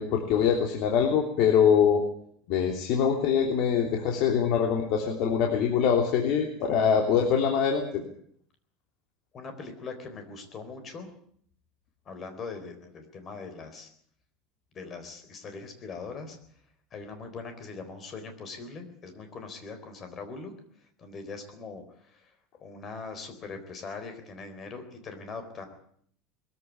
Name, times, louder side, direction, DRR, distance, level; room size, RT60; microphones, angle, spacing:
voice 1, 0.0-2.0 2.5-8.0, left 7 dB, 50° left, 2 dB, 3.2 m, -24 dB
voice 2, 9.3-11.1 12.1-13.9 14.7-16.4 16.9-20.5 21.0-25.7, left 4 dB, 25° left, 8 dB, 4.0 m, -41 dB
21.5 x 14.5 x 9.6 m, 0.64 s
cardioid pair, 165°, 0 cm